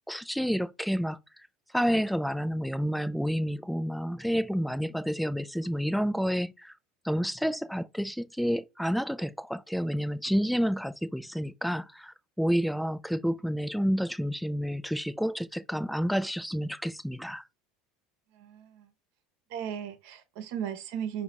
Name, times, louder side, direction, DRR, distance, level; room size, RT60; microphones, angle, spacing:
voice 1, 0.1-1.5 1.7-6.7 7.0-17.4, equal, ahead, 0.4 m, -29 dB
voice 2, 18.3-18.9 19.5-21.2, right 9 dB, 70° right, 0.9 m, -36 dB
5.0 x 2.3 x 4.0 m
hypercardioid pair, 90°, 0 cm